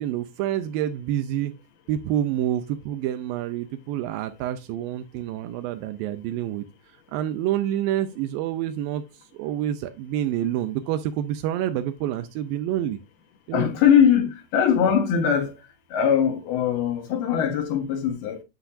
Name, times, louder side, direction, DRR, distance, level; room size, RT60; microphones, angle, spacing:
voice 1, 0.0-1.5 1.9-6.7 7.1-9.0 9.3-13.0 13.5-13.7, right 11 dB, 80° right, 2.1 m, -27 dB
voice 2, 13.5-18.4, left 8 dB, 75° left, 2.9 m, -21 dB
7.9 x 7.1 x 2.5 m
omnidirectional pair, 4.7 m